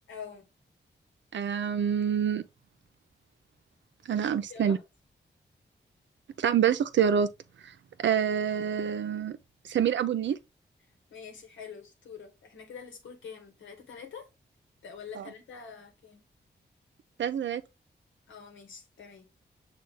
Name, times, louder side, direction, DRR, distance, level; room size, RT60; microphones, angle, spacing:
voice 1, 0.1-0.5 4.1-4.8 11.1-14.3 14.8-16.2 18.3-19.3, left 6 dB, 85° left, 1.1 m, -46 dB
voice 2, 1.3-2.4 4.1-4.8 6.4-7.3 8.0-9.4 9.7-10.4 15.2-15.3 17.2-17.6, right 8 dB, 75° right, 0.5 m, -26 dB
6.2 x 2.3 x 3.3 m
cardioid pair, 45°, 19 cm